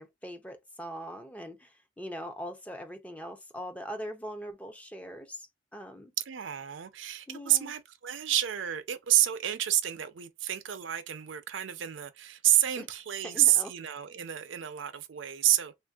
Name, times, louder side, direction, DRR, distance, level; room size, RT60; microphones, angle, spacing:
voice 1, 0.0-6.1 7.3-7.7 12.8-12.9 13.2-13.7, equal, 10° left, 0.4 m, -41 dB
voice 2, 6.2-15.7, right 13 dB, 75° right, 0.5 m, -29 dB
3.2 x 2.5 x 2.3 m
head